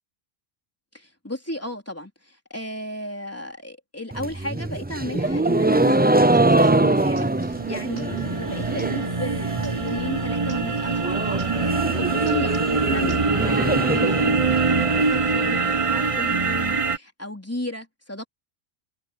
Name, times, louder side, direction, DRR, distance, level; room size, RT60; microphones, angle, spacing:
voice 1, 0.9-18.3, left 1 dB, 15° left, 4.0 m, -34 dB
sound 1, 4.1-9.1 9.4-10.0 10.3-10.4 10.6-10.7 11.0-15.0, right 2 dB, 15° right, 0.4 m, -23 dB
sound 2, 6.5-6.6 6.8-10.9 11.2-11.9 12.1-13.5, right 2 dB, 65° right, 3.7 m, -49 dB
sound 3, 7.1-17.0, right 4 dB, 30° right, 1.2 m, -24 dB
omnidirectional pair, 1.1 m